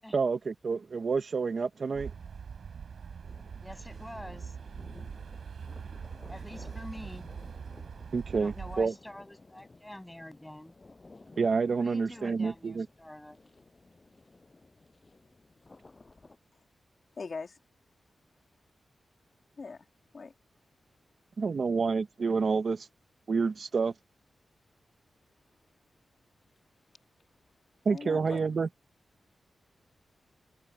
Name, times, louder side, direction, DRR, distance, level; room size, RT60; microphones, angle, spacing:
voice 1, 0.1-2.1 8.1-8.9 11.4-12.9 21.4-22.9 23.3-23.9 27.8-28.7, right 5 dB, 55° right, 0.8 m, -28 dB
sound 1, 1.9-8.9, right 6 dB, 75° right, 3.9 m, -43 dB
sound 2, 3.2-16.4, left 3 dB, 30° left, 6.5 m, -56 dB
voice 2, 3.6-4.6 6.3-7.3 8.3-10.7 11.8-13.4, left 1 dB, 10° left, 6.2 m, -46 dB
voice 3, 17.1-17.6 19.6-19.9 20.1-20.3 27.8-28.4, left 4 dB, 50° left, 2.3 m, -40 dB
wide cardioid pair, 105°, 0 cm